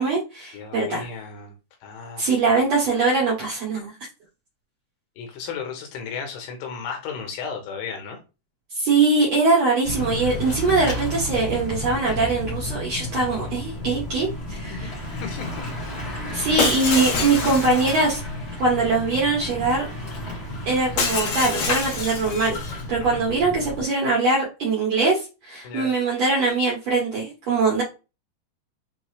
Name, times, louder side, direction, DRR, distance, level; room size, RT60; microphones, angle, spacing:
voice 1, 0.0-1.0 2.2-3.9 8.7-14.9 16.3-18.2 18.6-19.9 20.7-27.8, right 3 dB, 90° right, -4 dB, 1.4 m, -22 dB
voice 2, 0.5-1.5 1.8-2.2 5.2-8.2 14.7-14.9 15.2-15.5 23.0-23.2 25.6-25.9, left 6 dB, 85° left, 3 dB, 3.3 m, -34 dB
Bicycle / Mechanisms, 9.8-23.8, left 1 dB, 40° left, 1.4 m, -32 dB
Shatter, 16.6-18.2 21.0-22.8, left 5 dB, 70° left, 2.5 m, -26 dB
6.5 x 2.4 x 3.2 m, 0.30 s
omnidirectional pair, 4.9 m